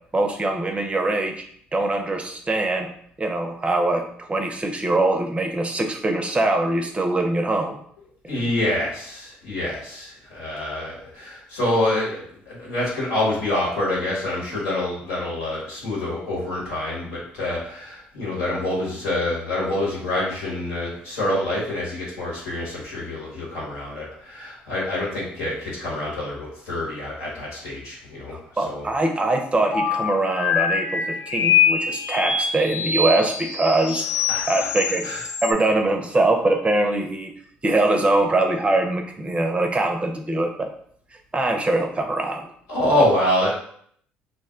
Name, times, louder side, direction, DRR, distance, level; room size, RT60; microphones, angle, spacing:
voice 1, 0.1-1.4 1.7-2.9 3.2-7.8 28.3-34.1 34.5-35.1 35.4-37.3 37.6-40.7 41.3-42.5, right 2 dB, 25° right, 4 dB, 0.5 m, -23 dB
voice 2, 8.3-28.8 34.3-34.7 35.0-35.2 42.7-43.5, left 1 dB, 80° left, -5 dB, 1.3 m, -26 dB
sound 1, 29.7-35.5, left 6 dB, 55° left, 0.5 m, -24 dB
2.5 x 2.1 x 3.6 m, 0.64 s
hypercardioid pair, 60°, 5 cm